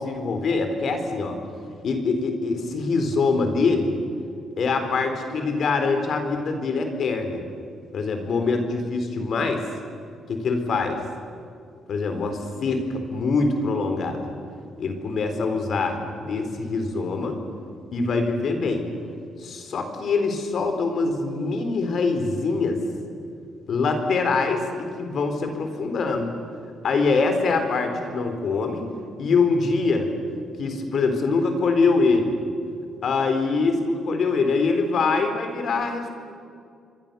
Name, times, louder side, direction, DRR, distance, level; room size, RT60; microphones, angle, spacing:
voice 1, 0.0-1.3 1.8-3.9 4.6-7.4 7.9-9.6 10.3-11.0 11.9-14.3 14.8-17.4 17.9-18.9 19.4-22.8 23.7-26.3 26.8-28.8 29.2-30.1 30.6-32.4 33.0-36.1, left 4 dB, 60° left, 6 dB, 4.2 m, -24 dB
29.0 x 23.5 x 7.1 m, 2.4 s
cardioid pair, 90°, 0 cm